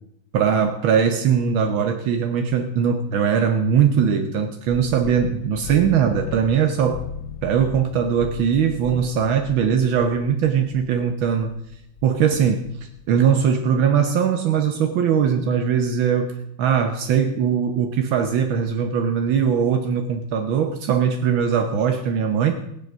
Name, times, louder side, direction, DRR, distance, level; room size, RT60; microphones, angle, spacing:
voice 1, 0.3-7.0 7.4-11.6 12.0-12.6 13.1-22.6, right 7 dB, 75° right, 5 dB, 1.7 m, -20 dB
sound 1, 4.7-13.0, left 8 dB, 50° left, 1.1 m, -38 dB
19.5 x 7.8 x 6.1 m, 0.78 s
omnidirectional pair, 2.2 m